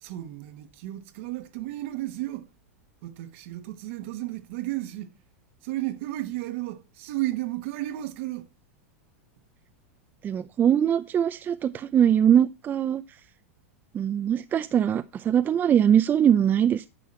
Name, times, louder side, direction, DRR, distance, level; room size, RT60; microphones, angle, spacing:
voice 1, 0.0-2.5 3.0-5.1 5.6-8.5, right 16 dB, 60° right, 1.3 m, -33 dB
voice 2, 10.2-13.0 13.9-16.9, right 9 dB, 25° right, 0.5 m, -22 dB
10.0 x 6.2 x 4.3 m
hypercardioid pair, 120°, 8 cm